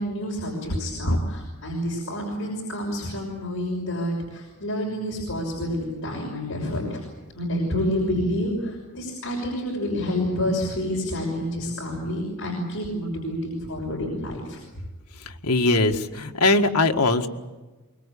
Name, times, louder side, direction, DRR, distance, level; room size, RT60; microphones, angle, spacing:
voice 1, 0.0-7.1 7.3-14.6, equal, 65° left, -1 dB, 6.2 m, -28 dB
voice 2, 15.4-17.3, left 2 dB, 90° left, 5 dB, 1.8 m, -20 dB
24.5 x 22.5 x 8.5 m, 1.2 s
head